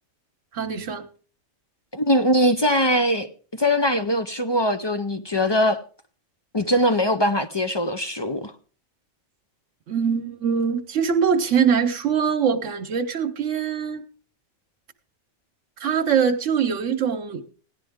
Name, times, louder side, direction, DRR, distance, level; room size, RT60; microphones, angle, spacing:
voice 1, 0.5-1.1 9.9-14.0 15.8-17.4, right 7 dB, 80° right, 1.2 m, -23 dB
voice 2, 1.9-5.8 6.5-8.5, equal, 30° left, 0.5 m, -21 dB
16.5 x 11.0 x 3.5 m
omnidirectional pair, 1.3 m